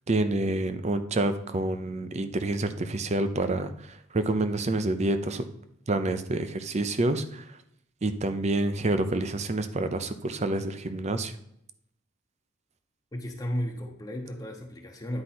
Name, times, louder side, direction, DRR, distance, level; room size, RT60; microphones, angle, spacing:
voice 1, 0.1-5.5 5.9-7.6 8.0-11.3, right 2 dB, 35° right, 10 dB, 0.6 m, -28 dB
voice 2, 13.1-15.2, equal, 20° left, 1 dB, 0.8 m, -34 dB
9.7 x 4.8 x 4.3 m, 0.75 s
head